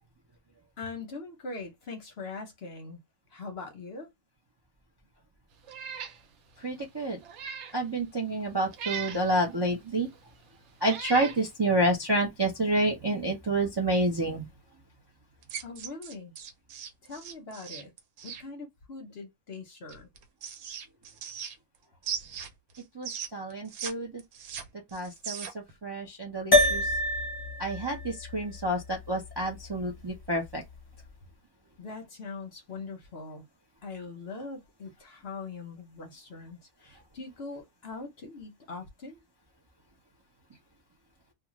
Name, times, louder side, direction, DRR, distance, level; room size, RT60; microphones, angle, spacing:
voice 1, 0.8-3.0 3.3-4.1 15.6-16.3 17.0-17.9 18.2-20.1 31.8-33.5 33.8-39.2, left 3 dB, 55° left, 0.8 m, -42 dB
Meow, 5.7-6.2 6.6-6.7 7.2-7.8 8.7-9.3 10.1-10.2 10.8-11.4, right 6 dB, 65° right, 0.8 m, -38 dB
voice 2, 6.6-7.2 7.7-10.1 10.8-14.5 22.9-24.2 24.9-26.9 27.6-30.6, right 1 dB, 35° right, 0.4 m, -29 dB
sound 1, 15.4-18.4 19.9-21.8 22.0-23.9 24.2-25.7, right 7 dB, 85° right, 1.2 m, -39 dB
sound 2, 26.5-31.1, left 2 dB, 20° left, 0.7 m, -28 dB
2.4 x 2.4 x 2.9 m
omnidirectional pair, 1.5 m